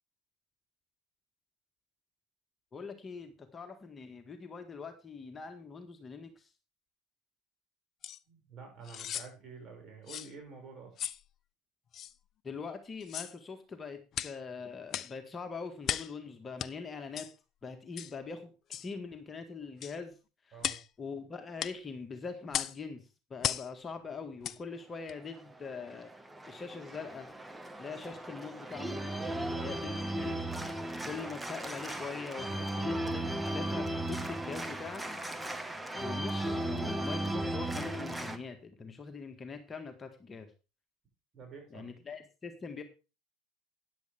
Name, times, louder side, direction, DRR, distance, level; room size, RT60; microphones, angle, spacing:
voice 1, 2.7-6.5 12.4-17.3 17.6-18.5 18.8-20.2 20.5-20.6 21.0-23.0 23.3-26.1 26.5-27.3 27.8-29.2 29.6-30.5 31.0-35.0 36.0-40.5 41.7-42.8, left 5 dB, 25° left, 6 dB, 1.8 m, -43 dB
sound 1, 8.0-8.2 8.8-9.3 10.1-10.3 11.0-11.2 11.9-12.1 13.0-13.4 14.1-14.4 14.9-15.2 15.8-16.1 16.6-16.7 17.2-17.3 18.0-18.1 18.7-18.9 19.8-20.0 20.6-20.9 21.6-21.8 22.5-22.8 23.4-23.7 24.4-24.6 25.1-25.2, left 10 dB, 45° left, 0.6 m, -36 dB
voice 2, 8.3-10.9 20.5-20.8 29.3-29.7 30.9-31.1 41.3-41.9, right 5 dB, 40° right, 2 dB, 6.3 m, -49 dB
Organ, 25.2-38.4, right 1 dB, 10° right, 1.3 m, -36 dB
13.0 x 10.0 x 3.6 m, 0.31 s
hypercardioid pair, 80°, 0 cm